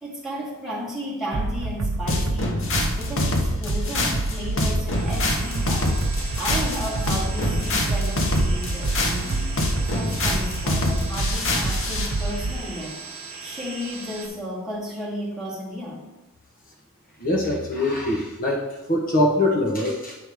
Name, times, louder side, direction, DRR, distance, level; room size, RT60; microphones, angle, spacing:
voice 1, 0.0-2.7 3.0-6.0 6.4-9.5 9.9-13.0 13.4-16.1, equal, ahead, -6 dB, 1.8 m, -33 dB
sound 1, 1.3-12.6, right 2 dB, 75° right, 0.6 m, -28 dB
sound 2, 2.1-12.1, left 2 dB, 60° left, 1.1 m, -26 dB
sound 3, 4.9-14.3, right 4 dB, 30° right, 1.5 m, -38 dB
voice 2, 17.2-20.2, left 1 dB, 40° left, -1 dB, 1.0 m, -23 dB
8.6 x 3.5 x 6.2 m, 1.0 s
head